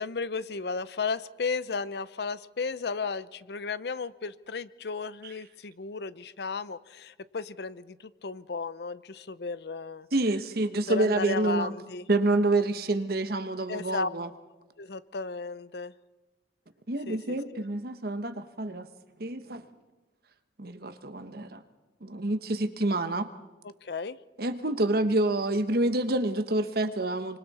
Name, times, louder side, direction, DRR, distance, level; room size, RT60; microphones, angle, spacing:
voice 1, 0.0-10.1 10.9-12.1 13.7-14.1 14.8-15.9 17.1-17.6 23.6-24.2, left 4 dB, 65° left, 16 dB, 0.6 m, -34 dB
voice 2, 10.1-11.7 12.1-14.3 16.9-18.9 19.2-19.6 20.6-21.6 22.0-23.3 24.4-27.4, right 2 dB, 60° right, 10 dB, 1.2 m, -27 dB
26.0 x 25.5 x 4.2 m, 1.2 s
head